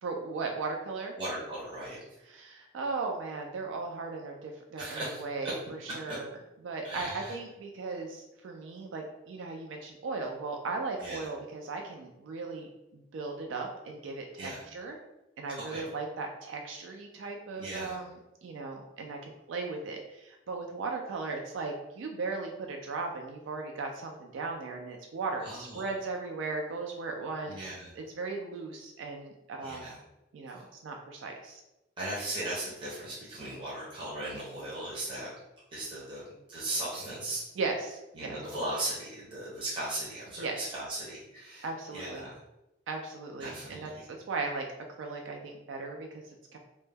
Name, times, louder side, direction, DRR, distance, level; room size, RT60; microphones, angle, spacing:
voice 1, 0.0-1.1 2.3-5.6 5.8-6.3 6.6-15.0 15.4-27.6 28.0-30.0 30.3-31.6 37.6-38.3 40.4-40.6 41.6-42.3 42.9-46.6, right 3 dB, 80° right, 2 dB, 0.3 m, -37 dB
voice 2, 1.2-2.0 4.8-5.5 6.8-7.4 11.0-11.3 14.4-14.6 15.5-15.8 17.6-18.0 25.4-25.9 27.5-27.9 29.6-30.0 30.5-30.7 32.0-35.3 35.7-36.2 36.5-37.4 38.1-41.7 41.9-42.4 43.4-44.0, right 1 dB, 25° right, -7 dB, 0.6 m, -37 dB
2.1 x 2.1 x 3.2 m, 0.95 s
head